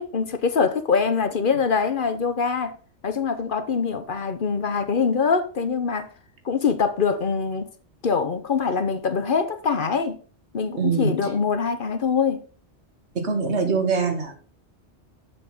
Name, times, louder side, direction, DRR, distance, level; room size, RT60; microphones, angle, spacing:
voice 1, 0.0-2.7 3.0-6.1 6.4-7.7 8.0-10.2 10.5-12.4, left 5 dB, 50° left, 1.0 m, -24 dB
voice 2, 10.8-11.3 13.2-14.3, right 4 dB, 75° right, 1.7 m, -23 dB
7.2 x 6.4 x 5.3 m
omnidirectional pair, 1.2 m